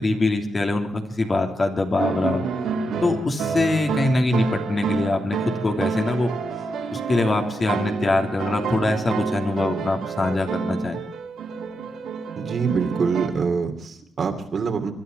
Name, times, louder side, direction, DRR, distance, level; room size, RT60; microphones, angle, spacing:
voice 1, 0.0-2.4 3.0-6.3 6.9-11.0, left 2 dB, 30° left, 4 dB, 3.1 m, -23 dB
sound 1, 2.0-13.3, right 5 dB, 75° right, 3.8 m, -29 dB
voice 2, 12.4-14.9, right 5 dB, 45° right, 6 dB, 2.7 m, -25 dB
25.0 x 11.5 x 4.6 m, 0.71 s
cardioid pair, 90°, 0 cm